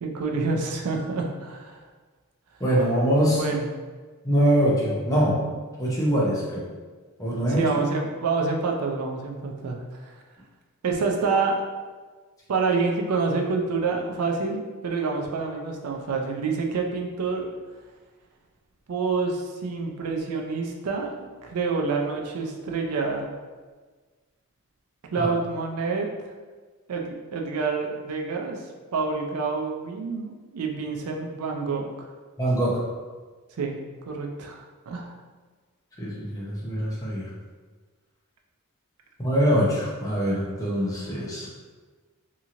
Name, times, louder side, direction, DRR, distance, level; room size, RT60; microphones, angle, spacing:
voice 1, 0.0-1.8 3.3-3.7 7.5-10.1 10.8-11.6 12.5-17.5 18.9-21.1 21.4-23.3 25.1-26.1 26.9-28.6 28.9-32.1 33.6-33.8 34.1-35.1, right 4 dB, 85° right, 2 dB, 0.4 m, -27 dB
voice 2, 2.6-3.4 4.2-5.4 5.8-6.7 7.2-7.7 25.2-25.3 32.4-32.8 36.0-37.3 39.2-41.5, equal, 15° left, -5 dB, 0.6 m, -23 dB
2.8 x 2.8 x 2.5 m, 1.4 s
head